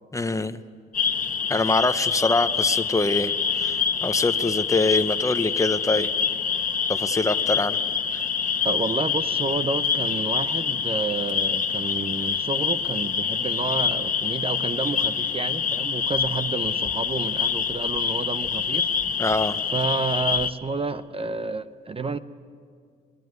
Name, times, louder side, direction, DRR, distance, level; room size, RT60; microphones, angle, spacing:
voice 1, 0.1-0.6 1.5-6.1 6.9-7.8 8.1-8.2 19.2-19.6, left 2 dB, 15° left, 11 dB, 0.8 m, -24 dB
sound 1, 0.9-20.5, left 6 dB, 40° left, 1.3 m, -26 dB
voice 2, 8.6-18.9 19.7-22.2, right 4 dB, 30° right, 12 dB, 0.8 m, -30 dB
24.0 x 19.5 x 9.5 m, 2.2 s
cardioid pair, 90°, 20 cm